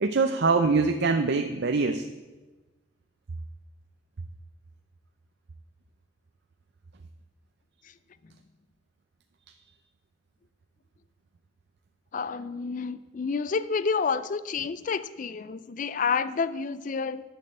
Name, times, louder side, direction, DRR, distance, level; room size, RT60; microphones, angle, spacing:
voice 1, 0.0-2.0, right 4 dB, 55° right, 7 dB, 0.5 m, -23 dB
voice 2, 12.1-17.2, left 5 dB, 40° left, 15 dB, 0.4 m, -29 dB
11.0 x 6.5 x 7.7 m, 1.2 s
head